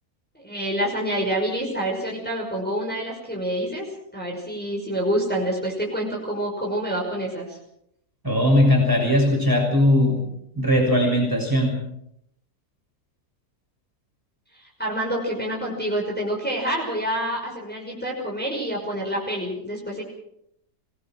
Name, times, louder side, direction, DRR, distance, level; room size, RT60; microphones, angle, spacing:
voice 1, 0.3-3.9 4.1-7.6 14.5-20.0, right 1 dB, 5° left, -2 dB, 6.0 m, -27 dB
voice 2, 8.2-10.2 10.5-11.8, left 1 dB, 10° right, 0 dB, 6.3 m, -19 dB
24.5 x 19.5 x 6.1 m, 0.76 s
omnidirectional pair, 1.6 m